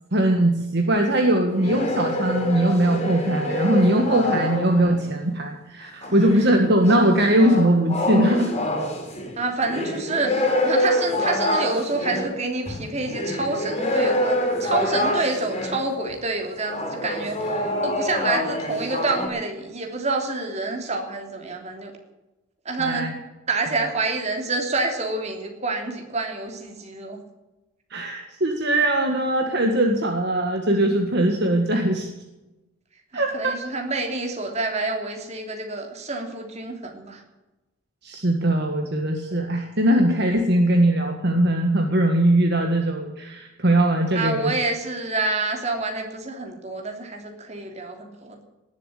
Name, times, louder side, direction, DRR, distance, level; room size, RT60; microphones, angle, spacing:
voice 1, 0.1-8.5 22.8-23.1 27.9-32.1 33.1-33.6 38.0-44.5, right 1 dB, 50° right, 3 dB, 1.7 m, -20 dB
sound 1, 1.5-5.0 6.0-15.9 16.6-19.3, left 1 dB, 30° left, 3.7 m, -26 dB
voice 2, 9.4-10.3 10.6-21.9 22.6-23.1 23.5-27.2 33.1-37.2 44.1-48.4, right 3 dB, 35° right, 2 dB, 3.1 m, -28 dB
19.0 x 7.6 x 9.9 m, 1.0 s
head